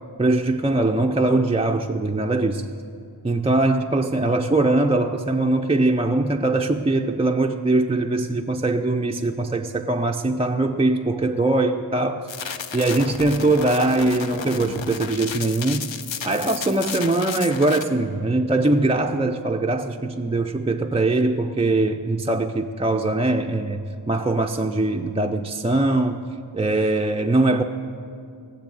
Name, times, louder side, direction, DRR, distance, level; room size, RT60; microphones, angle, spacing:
voice 1, 0.2-2.7 3.2-12.3 12.7-15.9 16.2-26.2 26.5-27.6, right 2 dB, 15° right, 3 dB, 0.4 m, -22 dB
sound 1, 12.3-17.8, left 7 dB, 70° left, 0.8 m, -33 dB
17.5 x 7.3 x 7.6 m, 2.4 s
wide cardioid pair, 115°, 47 cm